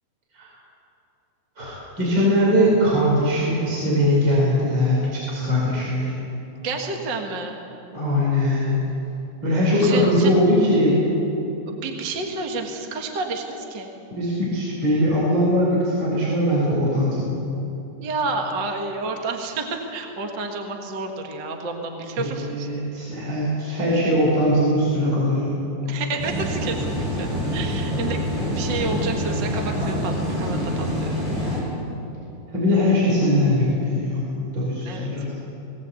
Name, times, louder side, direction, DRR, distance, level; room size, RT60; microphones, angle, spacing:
voice 1, 1.6-6.2 7.9-8.8 9.4-11.0 14.1-17.3 22.2-25.6 32.5-35.3, equal, 25° right, -5 dB, 5.1 m, -21 dB
voice 2, 6.6-7.5 9.8-10.4 11.7-13.9 18.0-22.7 25.8-31.1 34.8-35.1, right 3 dB, 50° right, 3 dB, 1.4 m, -30 dB
sound 1, 26.2-31.6, equal, 70° right, 9.6 m, -26 dB
20.0 x 19.0 x 8.3 m, 2.9 s
omnidirectional pair, 4.8 m